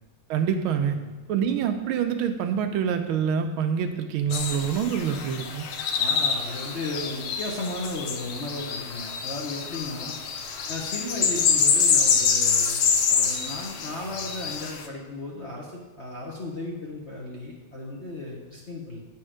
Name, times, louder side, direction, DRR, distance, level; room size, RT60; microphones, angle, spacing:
voice 1, 0.3-1.0 1.3-5.7, right 7 dB, 80° right, 7 dB, 1.5 m, -26 dB
sound 1, 4.3-14.9, left 6 dB, 80° left, 1.5 m, -26 dB
voice 2, 6.0-10.2 10.7-15.7 16.0-19.0, left 2 dB, 50° left, -3 dB, 0.8 m, -35 dB
8.6 x 4.4 x 4.9 m, 1.2 s
omnidirectional pair, 2.3 m